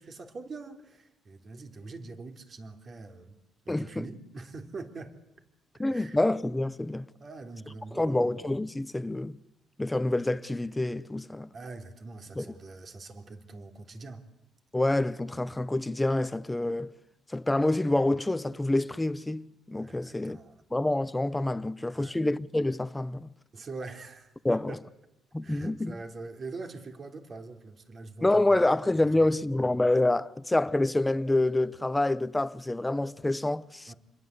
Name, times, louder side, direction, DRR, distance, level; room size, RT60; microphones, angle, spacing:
voice 1, 0.0-3.4 3.7-5.2 5.8-6.2 7.2-8.3 11.5-14.2 19.8-20.6 21.6-22.2 23.5-24.8 25.4-28.6 29.0-29.4 33.9-34.0, right 3 dB, 45° right, 3.4 m, -43 dB
voice 2, 3.7-4.0 5.8-7.1 7.9-9.4 9.8-11.5 12.4-12.5 14.7-16.9 17.3-20.4 20.7-23.3 24.4-24.8 25.3-25.9 28.2-33.9, left 2 dB, 10° left, 1.0 m, -27 dB
28.0 x 21.5 x 8.3 m
cardioid pair, 100°, 0 cm